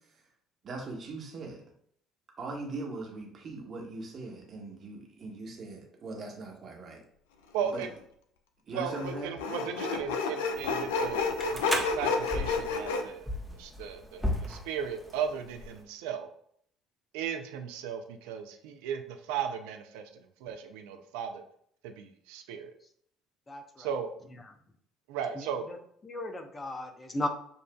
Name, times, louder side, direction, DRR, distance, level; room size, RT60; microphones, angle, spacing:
voice 1, 0.6-1.6 2.4-7.0 7.6-7.8 8.7-9.3, right 3 dB, 45° right, 1 dB, 1.1 m, -40 dB
voice 2, 7.5-7.9 8.7-13.3 13.6-16.3 17.1-21.4 21.8-22.7 23.8-24.1 25.1-25.6, right 7 dB, 70° right, 6 dB, 0.4 m, -36 dB
Sawing, 7.6-7.8 8.8-13.0, left 4 dB, 75° left, 0.4 m, -30 dB
sound 1, 10.5-15.8, left 1 dB, ahead, 0.9 m, -37 dB
voice 3, 23.5-23.9 24.4-24.5 25.4-25.8 26.0-27.3, left 1 dB, 25° left, 6 dB, 0.6 m, -36 dB
6.8 x 2.5 x 2.2 m, 0.66 s
figure-of-eight pair, 55°, 0 cm